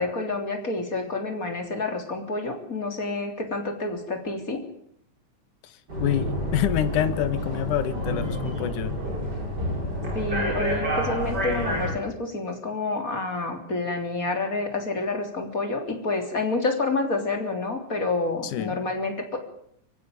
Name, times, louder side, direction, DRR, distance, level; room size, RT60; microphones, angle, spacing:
voice 1, 0.0-4.6 10.1-19.4, left 3 dB, 25° left, 5 dB, 3.7 m, -28 dB
voice 2, 5.6-9.0 18.4-18.8, left 11 dB, 80° left, 12 dB, 2.8 m, -27 dB
sound 1, 5.9-11.9, equal, 30° right, 6.4 m, -29 dB
24.0 x 16.0 x 9.3 m, 0.68 s
omnidirectional pair, 3.6 m